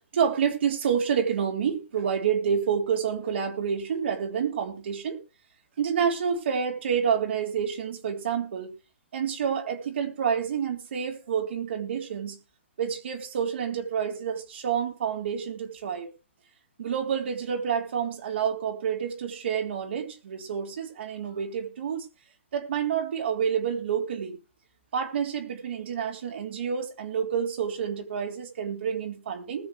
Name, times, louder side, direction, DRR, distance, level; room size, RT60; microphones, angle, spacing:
voice 1, 0.1-5.2 5.8-8.7 9.1-12.4 12.8-16.1 16.8-22.1 22.5-24.4 24.9-29.7, right 7 dB, 60° right, 3.3 m, -28 dB
20.0 x 7.1 x 3.5 m
hypercardioid pair, 155°, 7 cm